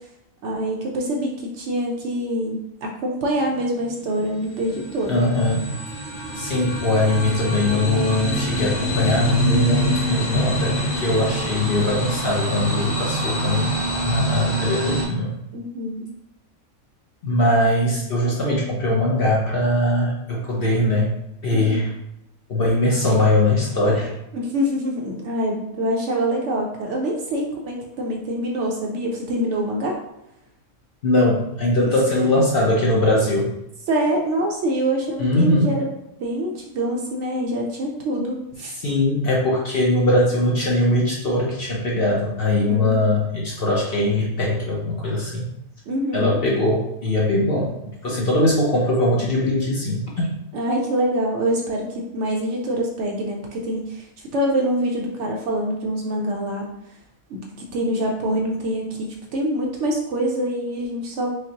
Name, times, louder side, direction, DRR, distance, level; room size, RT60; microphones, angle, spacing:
voice 1, 0.4-5.2 15.5-16.1 21.5-21.8 24.3-30.0 33.9-35.8 36.2-38.7 42.7-43.0 45.9-46.4 50.5-54.0 54.3-56.7 57.3-61.3, right 1 dB, 65° right, 0 dB, 0.9 m, -25 dB
sound 1, 3.5-15.1, equal, 75° left, 2.1 m, -26 dB
voice 2, 5.1-5.7 6.3-13.7 14.0-15.3 17.2-21.9 22.5-24.1 31.0-33.5 35.2-35.8 38.7-45.5 46.1-50.3, left 1 dB, 55° left, -3 dB, 0.7 m, -21 dB
5.0 x 2.0 x 2.8 m, 0.82 s
omnidirectional pair, 1.4 m